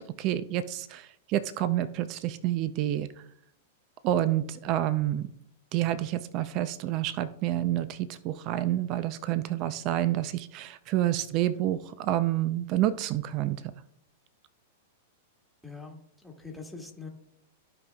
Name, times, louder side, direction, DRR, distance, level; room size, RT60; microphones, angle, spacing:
voice 1, 0.0-3.1 4.0-5.3 5.7-13.6, right 13 dB, 45° right, 13 dB, 0.5 m, -28 dB
voice 2, 15.6-16.0 16.2-17.1, left 4 dB, ahead, 1 dB, 1.7 m, -42 dB
15.0 x 5.2 x 2.3 m, 0.71 s
hypercardioid pair, 115°, 0 cm